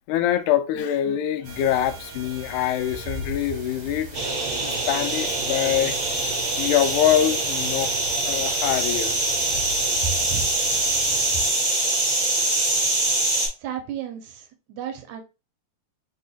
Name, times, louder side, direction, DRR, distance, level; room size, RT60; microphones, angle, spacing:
voice 1, 0.0-4.1 4.6-6.0 6.6-8.0 8.2-9.2, left 11 dB, 85° left, 1.9 m, -24 dB
sound 1, 1.4-11.5, right 2 dB, 60° right, 1.8 m, -37 dB
sound 2, 4.1-13.5, right 2 dB, 35° right, 1.4 m, -24 dB
voice 2, 13.6-15.2, right 10 dB, 75° right, 2.0 m, -34 dB
4.4 x 4.1 x 2.3 m
omnidirectional pair, 3.5 m